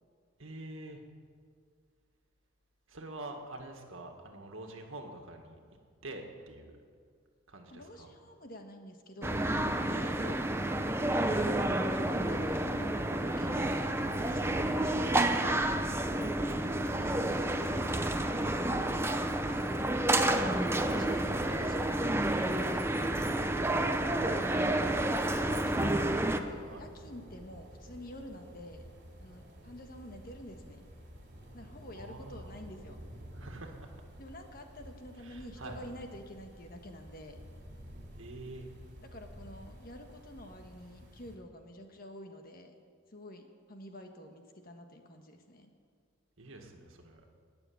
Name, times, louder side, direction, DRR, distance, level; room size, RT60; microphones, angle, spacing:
voice 1, 0.4-1.0 2.9-5.6 6.0-6.7 7.5-8.2 9.9-10.1 13.6-14.7 26.6-26.9 31.9-32.5 33.3-34.0 35.2-35.8 38.2-38.7 46.4-47.2, right 2 dB, 75° right, 3 dB, 1.9 m, -47 dB
voice 2, 7.7-9.6 10.0-10.4 10.7-13.9 14.2-15.7 16.4-16.6 16.9-19.0 19.4-20.0 20.5-23.0 25.3-28.9 29.2-30.9 31.5-33.0 34.2-37.4 39.1-42.7 43.1-45.7, left 1 dB, 45° left, 4 dB, 1.4 m, -49 dB
sound 1, 9.2-26.4, right 1 dB, 10° right, 0.6 m, -30 dB
sound 2, 24.2-41.4, equal, 55° right, 3.3 m, -51 dB
20.0 x 6.9 x 8.6 m, 2.1 s
head